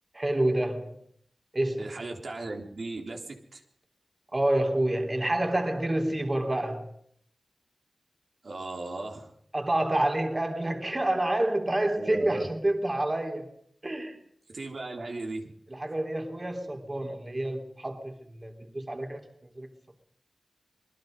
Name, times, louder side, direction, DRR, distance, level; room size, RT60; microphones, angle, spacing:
voice 1, 0.1-1.0 1.5-1.9 4.3-6.9 9.5-13.5 13.8-14.2 15.7-19.2 19.6-19.7, right 1 dB, 35° right, 3.6 m, -28 dB
voice 2, 1.8-3.6 8.4-9.3 12.0-12.5 14.5-15.5, right 2 dB, 75° right, 3.7 m, -37 dB
26.5 x 20.0 x 5.4 m
cardioid pair, 45°, 0 cm